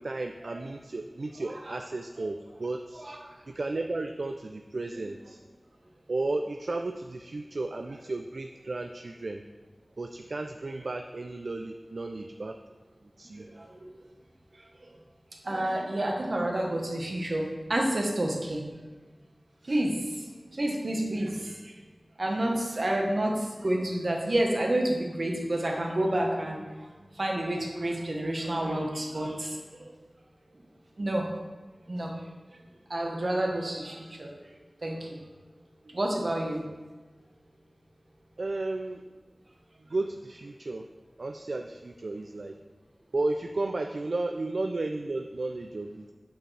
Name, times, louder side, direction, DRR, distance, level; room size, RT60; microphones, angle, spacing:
voice 1, 0.0-3.1 3.5-5.4 6.1-9.4 10.0-12.6 13.2-13.5 38.4-39.0 39.9-40.9 41.2-42.6 43.1-46.1, right 2 dB, 75° right, 5 dB, 0.3 m, -33 dB
voice 2, 13.4-13.9 14.8-14.9 15.4-18.6 19.7-20.2 20.5-21.8 22.2-26.9 27.2-29.9 31.0-31.3 31.9-32.1 32.9-34.3 34.8-35.2 35.9-36.6, right 1 dB, 60° right, 0 dB, 1.1 m, -29 dB
6.9 x 6.2 x 3.3 m, 1.3 s
wide cardioid pair, 55°, 0 cm